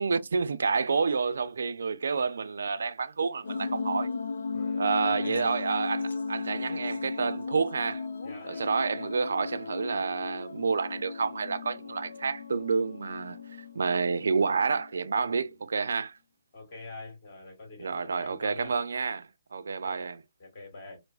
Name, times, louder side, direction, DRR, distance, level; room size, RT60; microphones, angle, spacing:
voice 1, 0.0-4.1 4.8-8.0 8.4-16.2 17.8-20.2, right 5 dB, 80° right, 0.4 m, -29 dB
sound 1, 3.4-14.9, left 4 dB, 85° left, 0.5 m, -36 dB
voice 2, 4.5-5.5 8.2-8.7 15.2-15.5 16.5-18.8 19.7-20.1 20.4-21.0, left 2 dB, 35° left, 2.0 m, -45 dB
4.7 x 2.0 x 2.3 m
hypercardioid pair, 170°, 0 cm